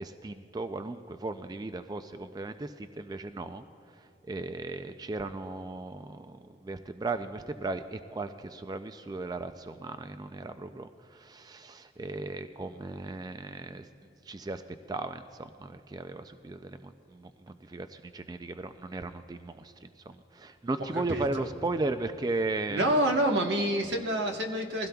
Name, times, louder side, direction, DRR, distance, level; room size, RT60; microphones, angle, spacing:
voice 1, 0.0-13.9 14.2-14.6 14.9-22.9, right 2 dB, 20° right, 9 dB, 0.3 m, -36 dB
voice 2, 20.9-21.5 22.7-24.9, right 1 dB, 90° right, 3 dB, 1.2 m, -27 dB
21.5 x 16.0 x 2.3 m, 2.5 s
head